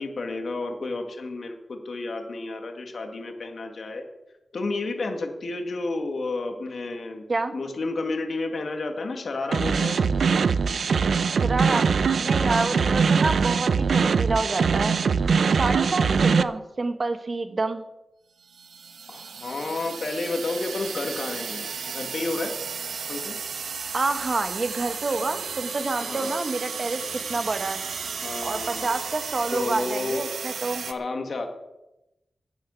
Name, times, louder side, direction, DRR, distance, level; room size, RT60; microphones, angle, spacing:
voice 1, 0.0-4.0 4.5-7.2 7.5-10.1 12.4-12.8 19.1-22.5 23.1-23.4 26.0-26.4 28.2-28.9 29.5-30.2 30.9-31.5, left 3 dB, 55° left, 4 dB, 2.0 m, -31 dB
sound 1, 9.5-16.4, right 5 dB, 70° right, 0.5 m, -22 dB
voice 2, 11.3-11.9 12.2-14.9 15.2-17.8 23.9-27.8 28.4-30.8, right 3 dB, 35° right, 8 dB, 1.3 m, -28 dB
sound 2, 18.5-30.9, right 6 dB, 90° right, 1.0 m, -34 dB
10.5 x 10.0 x 8.4 m, 0.93 s
wide cardioid pair, 135°, 0 cm